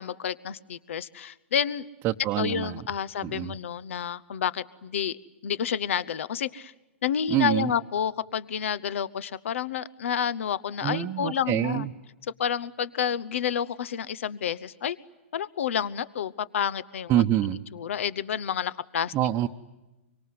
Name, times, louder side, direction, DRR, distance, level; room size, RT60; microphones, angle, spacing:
voice 1, 0.0-1.8 2.4-5.2 5.4-6.7 7.0-11.9 12.4-15.0 15.3-17.2 17.7-19.1, left 8 dB, 75° left, 19 dB, 0.9 m, -29 dB
voice 2, 2.0-2.8 3.2-3.6 7.3-7.7 10.8-11.9 17.1-17.6 19.1-19.5, right 13 dB, 35° right, 3 dB, 0.9 m, -26 dB
24.5 x 24.5 x 9.5 m, 1.0 s
hypercardioid pair, 120°, 7 cm